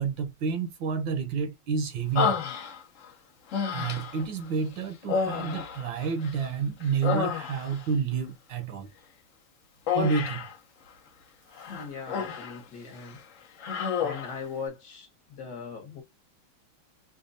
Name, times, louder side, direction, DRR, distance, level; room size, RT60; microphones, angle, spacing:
voice 1, 0.0-2.4 3.7-8.9 9.9-10.5 11.6-11.7, right 5 dB, 70° right, 1.3 m, -29 dB
Human voice, 2.2-3.1 3.5-4.3 5.0-6.5 6.8-7.9 9.9-10.6 11.6-12.6 12.9-13.2 13.6-14.4, left 6 dB, 90° left, 0.6 m, -30 dB
voice 2, 11.7-13.2 14.0-16.0, left 5 dB, 55° left, 1.4 m, -40 dB
5.2 x 2.2 x 2.5 m
omnidirectional pair, 2.4 m